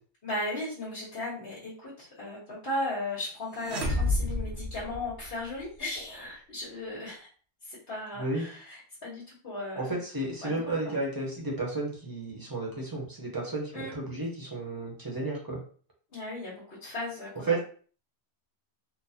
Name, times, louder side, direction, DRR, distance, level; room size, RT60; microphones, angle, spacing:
voice 1, 0.2-7.3 7.6-10.0 10.4-10.9 13.7-13.9 16.1-17.6, left 1 dB, 65° left, -8 dB, 1.4 m, -36 dB
sound 1, 3.6-5.6, left 2 dB, 80° right, 1.0 m, -30 dB
voice 2, 9.8-15.6 17.5-17.6, right 2 dB, 20° right, -2 dB, 0.8 m, -32 dB
3.8 x 2.1 x 2.8 m, 0.42 s
omnidirectional pair, 1.1 m